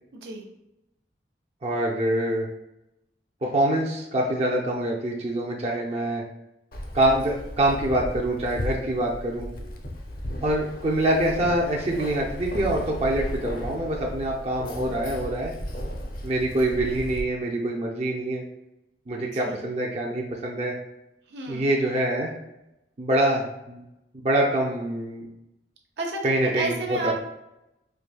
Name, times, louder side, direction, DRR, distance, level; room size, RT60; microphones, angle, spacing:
voice 1, 0.1-0.5 19.3-19.6 21.3-21.7 26.0-27.2, right 2 dB, 75° right, 0 dB, 0.8 m, -32 dB
voice 2, 1.6-2.5 3.4-6.2 6.9-9.5 10.4-15.5 16.2-18.4 19.1-20.7 21.5-22.3 23.0-23.8 24.2-25.2 26.2-27.2, right 1 dB, 35° right, -2 dB, 0.5 m, -25 dB
Keys jangling, 6.7-17.2, equal, 55° left, 0.6 m, -35 dB
4.7 x 2.7 x 2.3 m, 0.88 s
head